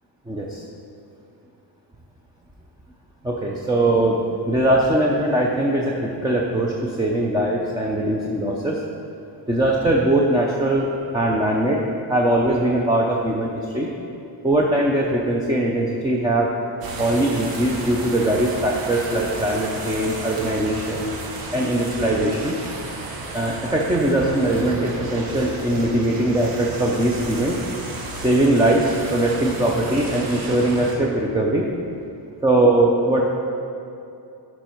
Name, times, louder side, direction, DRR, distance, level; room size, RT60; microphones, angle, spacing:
voice 1, 0.3-0.6 3.2-4.2 4.4-8.8 9.5-11.8 12.1-13.9 14.4-16.5 17.0-21.1 21.5-22.6 23.3-27.6 28.2-31.7 32.4-33.2, right 1 dB, 10° right, -2 dB, 0.6 m, -21 dB
sound 1, 16.8-31.0, right 2 dB, 55° right, 1.2 m, -33 dB
11.5 x 5.4 x 4.5 m, 2.7 s
cardioid pair, 160°, 43 cm